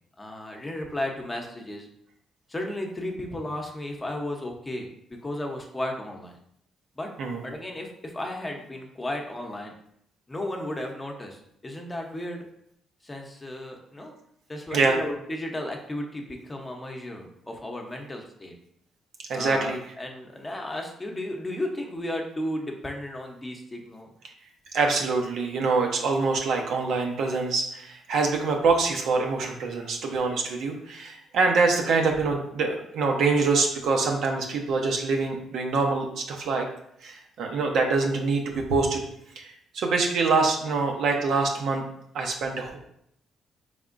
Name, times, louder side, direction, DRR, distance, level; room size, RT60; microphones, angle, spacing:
voice 1, 0.2-1.9 2.5-6.3 6.9-7.1 7.4-9.7 10.3-12.5 13.0-14.1 14.5-18.5 19.3-24.1, left 1 dB, 20° left, 1 dB, 0.8 m, -34 dB
voice 2, 19.3-19.8 24.7-36.7 37.0-39.0 39.4-41.8 42.1-42.8, right 4 dB, 75° right, 2 dB, 0.8 m, -25 dB
4.2 x 3.5 x 2.5 m, 0.71 s
cardioid pair, 90°, 0 cm